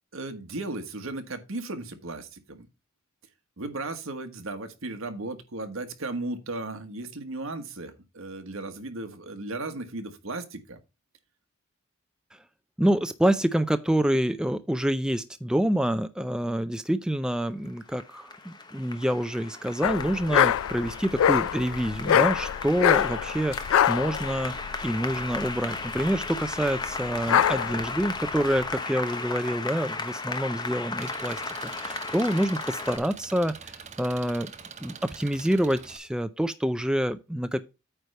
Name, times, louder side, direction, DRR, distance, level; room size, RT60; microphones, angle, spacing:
voice 1, 0.1-2.7 3.6-10.8, right 2 dB, 75° right, 1.4 m, -36 dB
voice 2, 12.8-24.5 24.8-34.5 34.8-37.6, equal, 5° right, 0.4 m, -27 dB
Applause, 17.7-33.0, left 3 dB, 20° left, 0.9 m, -35 dB
sound 1, 19.8-28.7, left 9 dB, 85° left, 0.3 m, -25 dB
Engine, 31.0-36.0, right 6 dB, 35° right, 0.8 m, -44 dB
8.9 x 3.3 x 6.5 m
head